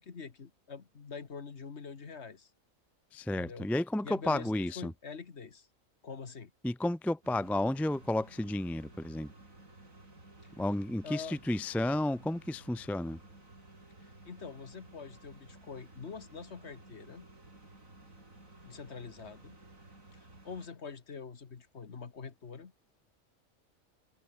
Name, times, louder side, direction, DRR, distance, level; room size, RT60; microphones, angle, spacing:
voice 1, 0.0-2.5 3.3-3.7 4.0-5.7 6.0-6.5 10.4-10.6 11.0-11.4 14.0-17.3 18.6-19.5 20.1-22.7, left 5 dB, 50° left, 1.8 m, -45 dB
voice 2, 3.1-4.9 6.6-9.3 10.6-13.2, left 1 dB, ahead, 0.3 m, -32 dB
sound 1, 7.2-20.7, right 2 dB, 70° right, 6.4 m, -55 dB
omnidirectional pair, 1.4 m